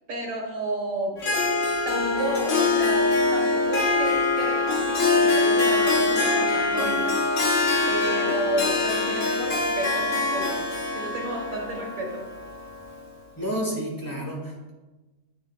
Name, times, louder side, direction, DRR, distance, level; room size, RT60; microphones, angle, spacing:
voice 1, 0.1-1.2 1.8-7.1 7.9-10.6 10.9-12.2, right 1 dB, 80° right, 0 dB, 1.9 m, -32 dB
Harp, 1.2-13.0, left 3 dB, 70° left, 1.5 m, -24 dB
voice 2, 13.4-14.7, equal, 15° left, -3 dB, 1.6 m, -30 dB
8.8 x 6.4 x 2.4 m, 1.2 s
omnidirectional pair, 1.4 m